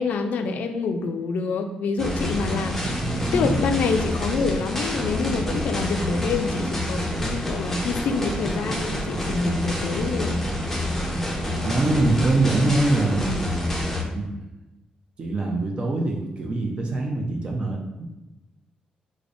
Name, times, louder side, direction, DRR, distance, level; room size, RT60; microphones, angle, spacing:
voice 1, 0.0-10.4, left 4 dB, 80° left, 7 dB, 0.3 m, -27 dB
sound 1, 2.0-14.0, left 1 dB, 10° left, 0.5 m, -27 dB
voice 2, 2.8-3.6 11.6-13.4 14.1-14.3 15.2-18.1, right 2 dB, 40° right, 0 dB, 0.4 m, -24 dB
4.9 x 2.0 x 2.5 m, 1.0 s
cardioid pair, 130°, 3 cm